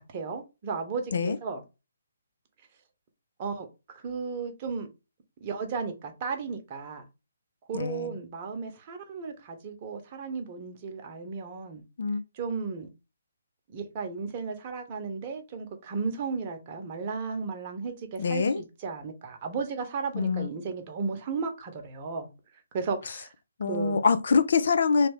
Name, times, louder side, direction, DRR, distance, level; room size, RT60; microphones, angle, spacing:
voice 1, 0.0-1.6 3.4-4.9 5.4-7.1 7.7-11.8 12.3-12.9 13.7-22.3 22.7-23.3 23.7-24.0, right 5 dB, 30° right, 0.9 m, -34 dB
voice 2, 7.7-8.1 12.0-12.2 18.2-18.6 20.1-20.5 23.6-25.1, left 5 dB, 55° left, 0.5 m, -24 dB
3.2 x 2.8 x 3.5 m
figure-of-eight pair, 135°, 0 cm